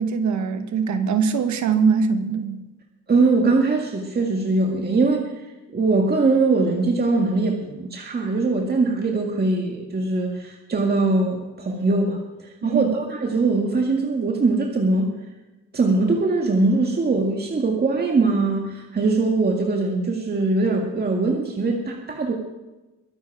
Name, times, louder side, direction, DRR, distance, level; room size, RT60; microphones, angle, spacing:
voice 1, 0.0-2.6 12.6-13.0, right 5 dB, 70° right, 9 dB, 1.4 m, -22 dB
voice 2, 3.1-5.4 5.7-15.1 15.7-22.3, right 3 dB, 30° right, 1 dB, 1.9 m, -21 dB
23.0 x 8.2 x 4.9 m, 1.1 s
cardioid pair, 90°, 30 cm